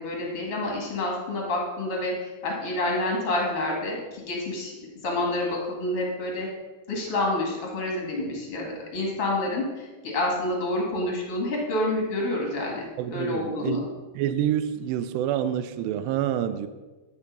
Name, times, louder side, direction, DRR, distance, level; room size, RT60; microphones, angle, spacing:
voice 1, 0.0-4.7 5.0-6.5 6.9-13.8, left 1 dB, 45° left, -1 dB, 2.2 m, -28 dB
voice 2, 13.0-13.9 14.2-16.7, right 10 dB, 80° right, 11 dB, 2.5 m, -27 dB
10.5 x 7.2 x 5.3 m, 1.2 s
omnidirectional pair, 5.1 m